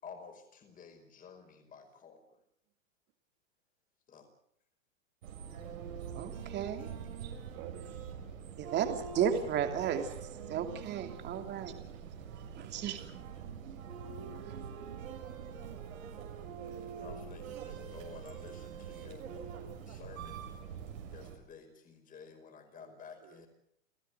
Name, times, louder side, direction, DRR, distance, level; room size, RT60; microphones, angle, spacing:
voice 1, 0.0-2.4 4.1-4.3 8.6-8.9 9.3-9.7 16.3-19.2 19.9-20.5 21.1-23.5, left 6 dB, 20° left, 6 dB, 5.1 m, -52 dB
sound 1, 5.2-21.4, right 7 dB, 85° right, 7.0 m, -44 dB
voice 2, 6.1-6.9 8.6-10.1 10.5-11.7 12.6-13.2 14.4-14.6, right 8 dB, 25° right, 6 dB, 2.9 m, -34 dB
voice 3, 7.5-8.2 22.1-22.3 22.7-23.5, right 11 dB, 40° right, 6 dB, 2.4 m, -52 dB
28.5 x 15.0 x 8.0 m, 0.71 s
hypercardioid pair, 145°, 39 cm